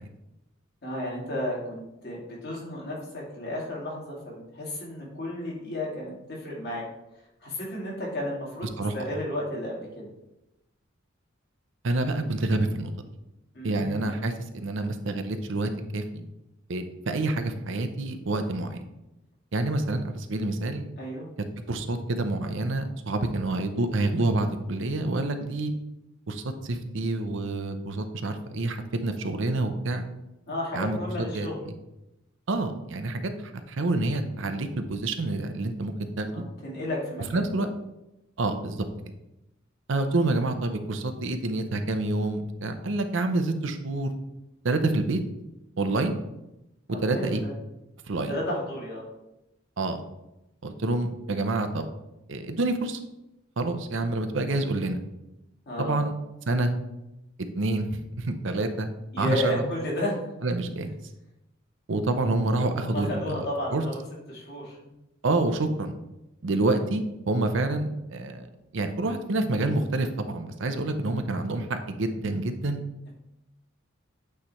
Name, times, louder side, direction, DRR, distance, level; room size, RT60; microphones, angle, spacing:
voice 1, 0.8-6.8 7.4-8.7 8.9-10.1 13.5-14.2 21.0-21.3 30.5-31.6 36.3-37.7 46.9-47.5 48.3-49.1 55.7-56.1 59.1-60.2 62.8-64.0 64.3-64.8, left 1 dB, 55° left, -4 dB, 2.5 m, -33 dB
voice 2, 11.8-12.9 13.6-16.2 16.7-18.8 19.5-20.8 21.7-25.7 26.3-30.0 30.7-31.7 32.5-33.3 33.7-36.4 37.3-37.7 38.4-38.9 39.9-44.1 44.6-45.2 45.8-46.2 46.9-47.4 48.1-48.3 49.8-50.0 50.6-51.9 52.3-53.0 53.6-55.0 55.8-56.1 56.5-56.7 57.5-58.9 59.2-59.6 60.4-60.9 61.9-63.4 63.7-63.8 65.2-65.9 66.4-68.5 68.7-72.8, right 2 dB, 65° right, 7 dB, 0.6 m, -27 dB
8.5 x 3.3 x 4.2 m, 0.91 s
head